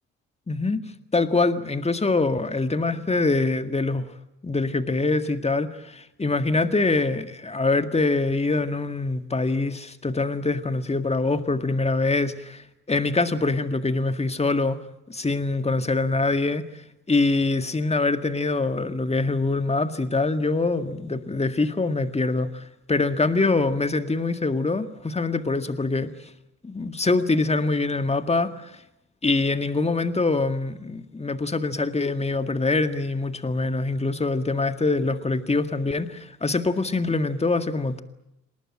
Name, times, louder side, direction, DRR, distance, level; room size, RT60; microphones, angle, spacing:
voice 1, 0.5-0.8 1.1-4.1 4.4-14.8 15.1-16.6 17.1-26.1 26.6-28.7 29.2-38.0, left 3 dB, 15° left, 1.9 m, -24 dB
27.5 x 19.0 x 9.0 m
figure-of-eight pair, 50°, 37 cm